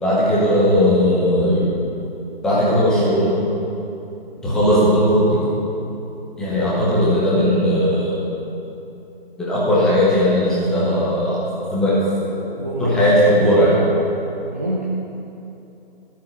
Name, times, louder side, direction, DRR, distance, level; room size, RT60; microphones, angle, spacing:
voice 1, 0.0-1.7 2.4-3.3 4.4-5.4 6.4-8.2 9.4-11.4 11.7-12.0 12.8-13.8, equal, ahead, -8 dB, 0.9 m, -17 dB
voice 2, 6.4-6.9 12.2-13.9 14.5-14.9, right 1 dB, 15° right, -5 dB, 0.5 m, -28 dB
12.5 x 7.5 x 5.5 m, 2.9 s
figure-of-eight pair, 155°, 30 cm